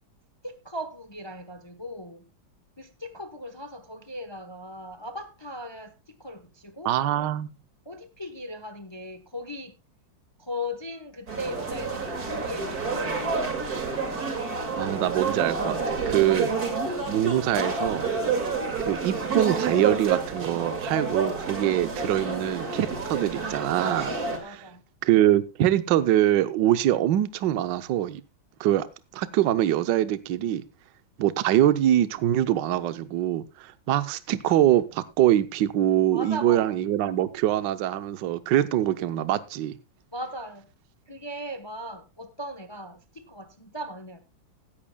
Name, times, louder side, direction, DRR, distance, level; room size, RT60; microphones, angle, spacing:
voice 1, 0.4-2.2 2.8-7.3 7.8-9.7 10.4-13.5 24.4-24.8 36.1-36.8 40.1-40.7 41.1-44.2, equal, 20° left, 0.7 m, -38 dB
voice 2, 6.8-7.5 14.8-16.5 17.1-18.1 18.9-24.1 24.4-24.6 25.0-28.2 28.6-28.9 29.1-30.6 31.2-39.7, right 12 dB, 70° right, 1.4 m, -24 dB
sound 1, 11.3-24.4, right 4 dB, 50° right, 2.8 m, -29 dB
16.0 x 13.5 x 2.2 m
omnidirectional pair, 2.1 m